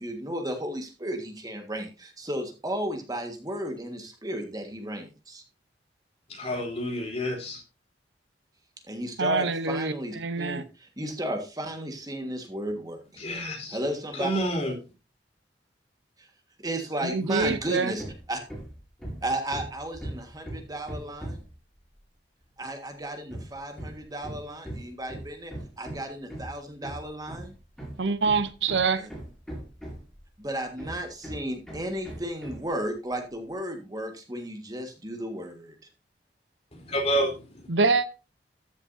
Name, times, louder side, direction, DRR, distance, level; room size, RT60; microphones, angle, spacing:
voice 1, 0.0-5.4 8.9-13.2 13.7-14.3 16.2-16.3 16.6-18.4 19.2-21.4 22.6-27.5 29.0-29.1 30.4-35.8, right 1 dB, 20° right, 1.7 m, -34 dB
voice 2, 6.3-7.5 13.2-13.8 14.1-14.7 36.7-37.6, equal, 35° left, 3.8 m, -29 dB
voice 3, 9.2-10.6 17.0-17.9 28.0-29.1 37.7-38.1, right 4 dB, 85° right, 0.9 m, -25 dB
Hammer, 17.4-17.7 18.0-21.6 23.3-30.2 30.8-32.7, right 1 dB, 5° left, 4.9 m, -39 dB
14.0 x 7.4 x 2.7 m
head